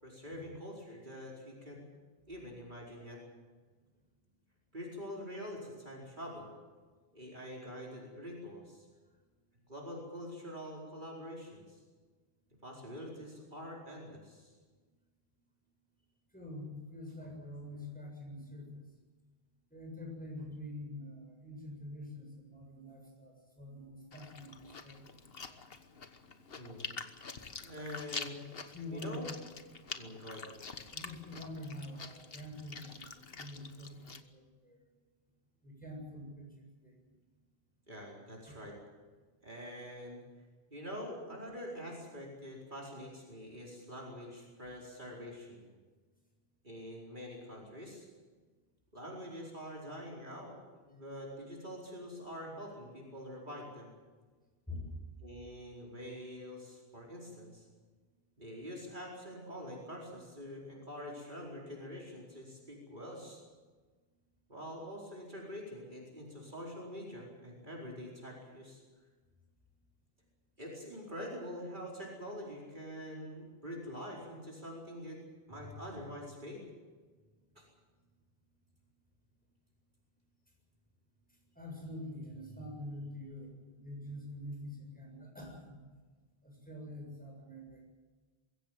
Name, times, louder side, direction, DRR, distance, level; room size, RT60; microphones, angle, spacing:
voice 1, 0.0-1.8 2.3-3.2 4.7-6.5 7.1-8.9 9.7-11.8 12.6-14.5 26.6-26.9 27.6-28.4 28.9-29.3 30.0-30.5 37.9-38.7 39.4-40.2 40.7-45.6 46.6-48.1 48.9-50.5 50.8-53.9 55.2-57.6 58.4-63.4 64.5-68.8 70.6-75.2 75.5-76.6 77.5-77.6, equal, 50° right, -2 dB, 4.9 m, -45 dB
voice 2, 16.3-18.8 19.7-25.0 25.4-25.6 27.8-28.0 28.6-29.2 30.9-34.8 35.6-36.9 38.5-38.6 54.7-55.0 75.5-75.8 81.5-85.8 86.4-87.9, left 1 dB, 10° left, -1 dB, 7.2 m, -46 dB
Chewing mastication, 24.1-34.2, left 5 dB, 65° left, 1.5 m, -47 dB
22.0 x 16.0 x 9.2 m, 1.4 s
omnidirectional pair, 1.1 m